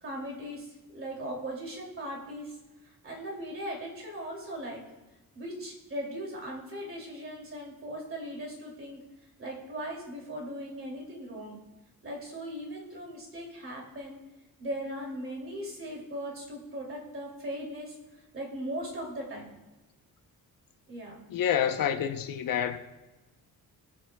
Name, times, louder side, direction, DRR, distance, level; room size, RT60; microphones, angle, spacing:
voice 1, 0.0-2.5 2.8-4.8 5.3-9.0 9.4-11.6 12.0-14.2 14.6-17.9 18.3-19.5 20.9-21.2, equal, 35° right, 2.6 m, -38 dB
voice 2, 21.3-22.8, left 9 dB, 65° left, 0.8 m, -28 dB
20.0 x 7.5 x 2.2 m
wide cardioid pair, 170°, 36 cm